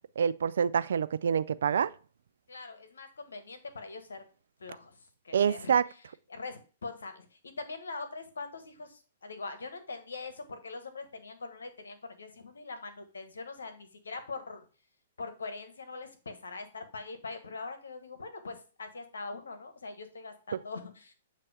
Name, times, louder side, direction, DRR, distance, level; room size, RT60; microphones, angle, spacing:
voice 1, 0.2-1.9 5.3-5.8, right 7 dB, 75° right, 0.3 m, -26 dB
voice 2, 2.5-4.2 4.6-5.0 5.2-5.8 6.3-14.6 15.2-21.1, left 3 dB, 85° left, 1.2 m, -42 dB
8.0 x 2.9 x 4.8 m
hypercardioid pair, 130°, 0 cm